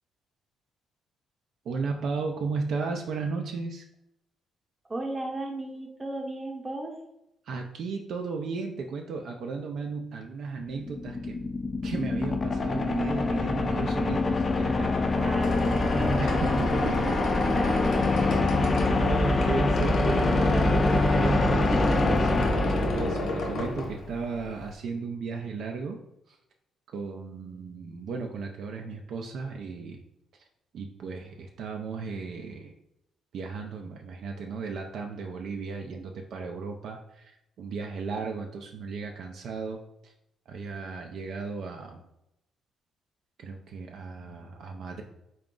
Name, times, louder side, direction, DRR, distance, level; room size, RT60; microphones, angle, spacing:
voice 1, 1.7-3.9 7.5-11.5 11.8-15.3 16.2-17.4 18.2-18.5 18.9-26.0 26.3-26.4 26.9-30.0 30.7-32.7 33.3-37.3 37.6-40.1 40.5-42.0 43.4-45.0, right 4 dB, 70° right, 3 dB, 0.4 m, -35 dB
voice 2, 4.9-7.0 15.2-16.7 17.0-18.3 19.6-21.2 21.7-22.3 23.3-23.4, right 1 dB, 25° right, 1 dB, 0.8 m, -35 dB
sound 1, 10.6-23.7, left 3 dB, 35° left, 0.4 m, -25 dB
Squeak, 15.1-24.7, left 1 dB, 70° left, 0.8 m, -33 dB
3.7 x 2.3 x 3.7 m, 0.83 s
cardioid pair, 90°, 0 cm